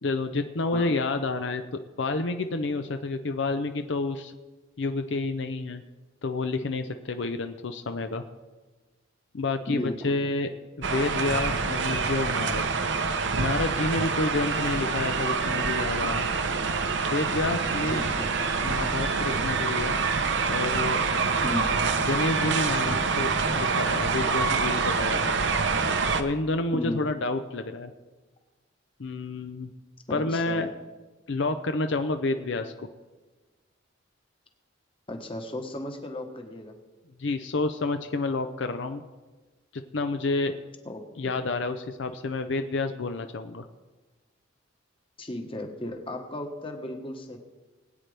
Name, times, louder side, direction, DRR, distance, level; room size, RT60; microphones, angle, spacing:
voice 1, 0.0-4.3 4.8-5.8 6.2-8.2 9.3-10.5 10.8-12.7 13.4-16.3 17.1-18.0 18.6-19.9 20.5-21.0 22.0-25.4 26.2-27.9 29.0-29.7 30.1-30.7 31.3-32.9 37.2-39.0 39.7-40.5 41.2-43.7, left 3 dB, 65° left, 8 dB, 0.6 m, -29 dB
voice 2, 9.7-10.1 17.9-18.3 21.4-21.8 26.7-27.1 30.1-30.7 35.1-36.7 40.8-41.3 45.2-47.4, left 1 dB, 30° left, 4 dB, 1.3 m, -35 dB
sound 1, 10.8-26.2, right 4 dB, 65° right, 0.8 m, -26 dB
20.5 x 9.1 x 3.4 m, 1.3 s
head